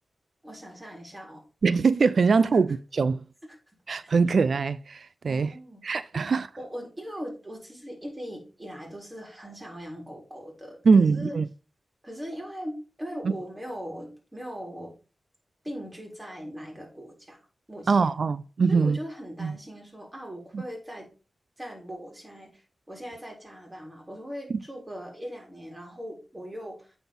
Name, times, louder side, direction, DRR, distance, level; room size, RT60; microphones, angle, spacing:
voice 1, 0.4-1.4 2.5-2.6 4.0-4.1 5.3-5.8 6.1-6.2 6.6-11.4 12.0-14.9 15.6-17.4 17.7-18.1 18.7-21.1 21.6-26.9, equal, 20° right, 3.9 m, -40 dB
voice 2, 1.6-3.2 3.9-5.5 5.8-6.5 10.9-11.5 13.2-13.3 17.9-19.0 19.4-19.6 20.5-20.6 24.5-24.6, right 4 dB, 70° right, 0.4 m, -22 dB
8.6 x 4.0 x 5.3 m
cardioid pair, 60°, 0 cm